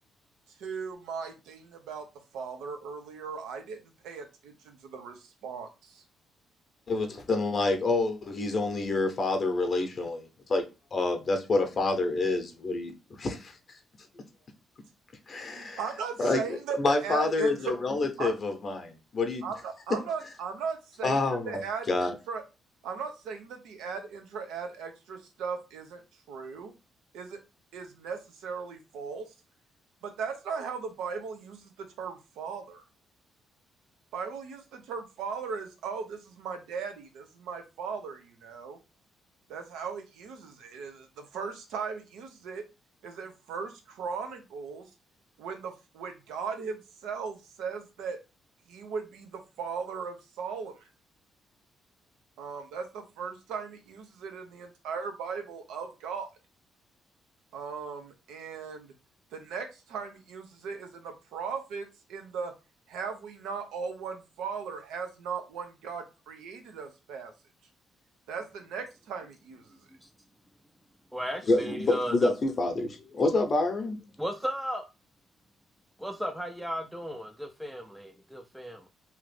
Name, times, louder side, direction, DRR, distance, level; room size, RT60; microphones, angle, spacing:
voice 1, 0.6-2.1 2.3-6.0 15.4-17.8 18.2-18.3 19.4-22.4 22.8-26.0 26.3-26.7 27.1-27.4 27.7-29.3 30.0-32.8 34.1-38.8 39.5-42.6 43.0-44.9 45.4-48.2 48.7-50.9 52.4-56.3 57.5-58.9 59.3-62.5 62.9-67.3 68.3-69.8, right 5 dB, 90° right, 0.7 m, -38 dB
voice 2, 6.9-10.6 10.9-13.5 15.3-15.8 16.2-16.4 16.8-19.4 21.0-21.6 21.9-22.1 71.5-74.0, left 2 dB, 45° left, 0.7 m, -27 dB
voice 3, 71.1-72.3 74.2-74.8 76.0-78.9, equal, 5° right, 0.4 m, -35 dB
2.9 x 2.5 x 3.2 m
cardioid pair, 85°, 0 cm